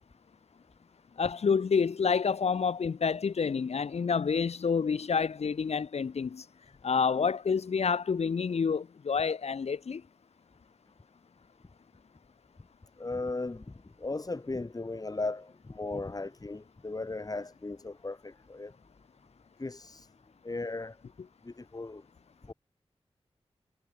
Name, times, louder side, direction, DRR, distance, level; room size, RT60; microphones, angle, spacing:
voice 1, 1.2-6.4 6.8-10.0, left 5 dB, 80° left, 2.4 m, -28 dB
voice 2, 13.0-18.7 19.6-20.1 20.4-21.0 21.4-22.0 22.5-22.6, left 2 dB, 35° left, 2.6 m, -37 dB
cardioid pair, 55°, 11 cm